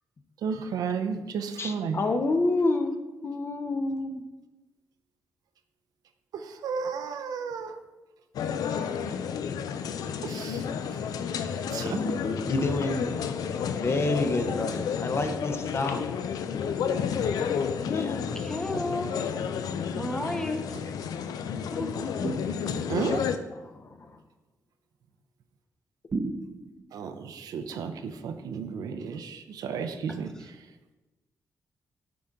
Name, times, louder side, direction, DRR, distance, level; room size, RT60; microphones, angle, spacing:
voice 1, 0.4-2.0 6.3-7.8 10.2-10.6 11.7-12.0 17.3-17.4 22.9-23.2 26.9-30.3, right 6 dB, 85° right, 0.5 m, -33 dB
voice 2, 1.6-4.2 11.7-13.2 13.8-16.1 17.9-18.3 21.7-21.8 22.4-22.5 23.5-24.2, left 2 dB, 40° left, 0.7 m, -29 dB
sound 1, 8.3-23.4, left 7 dB, 80° left, 0.4 m, -31 dB
voice 3, 18.3-19.3 19.9-20.8 21.7-22.0 30.1-30.2, left 1 dB, 10° left, 0.7 m, -32 dB
sound 2, 22.2-23.1 26.1-27.0, right 3 dB, 40° right, 0.6 m, -34 dB
8.5 x 3.8 x 3.6 m
cardioid pair, 90°, 6 cm